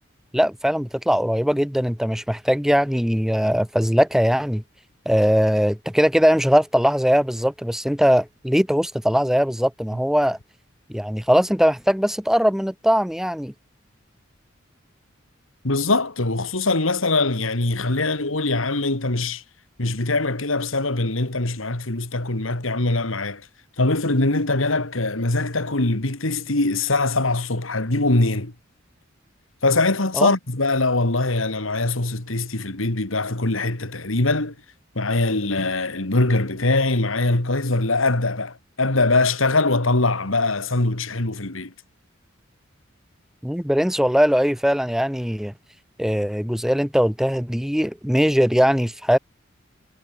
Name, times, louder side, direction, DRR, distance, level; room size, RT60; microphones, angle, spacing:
voice 1, 0.3-4.6 5.0-10.4 10.9-13.5 30.2-30.3 43.4-45.5 46.0-49.2, equal, ahead, 1.4 m, -20 dB
voice 2, 15.6-19.4 19.8-23.4 23.8-28.5 29.6-34.5 34.9-41.7, left 2 dB, 85° left, 2.5 m, -22 dB
head